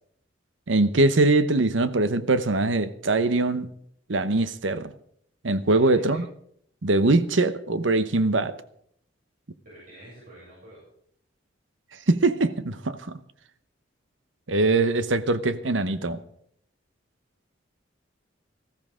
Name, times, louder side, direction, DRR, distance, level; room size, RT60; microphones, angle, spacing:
voice 1, 0.7-3.7 4.1-4.9 5.4-6.3 6.8-8.5 12.1-13.2 14.5-16.2, right 2 dB, 80° right, 0.9 m, -22 dB
voice 2, 5.7-6.2 9.6-10.8, right 1 dB, 50° right, 7.5 m, -48 dB
19.5 x 15.0 x 3.7 m
head